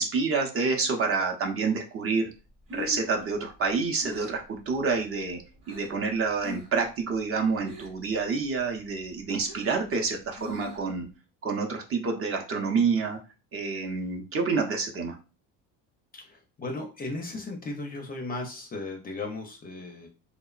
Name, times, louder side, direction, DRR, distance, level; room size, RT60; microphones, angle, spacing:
voice 1, 0.0-2.3 2.7-5.4 5.7-11.1 11.4-13.2 13.5-15.2, right 4 dB, 35° right, 2 dB, 0.6 m, -28 dB
Breathing, 2.4-6.0 6.4-6.8 7.1-8.1 8.5-11.0, left 3 dB, 85° right, 1.2 m, -43 dB
voice 2, 16.1-20.1, left 2 dB, 25° left, 2 dB, 0.5 m, -36 dB
2.9 x 2.0 x 2.3 m, 0.33 s
cardioid pair, 110°, 37 cm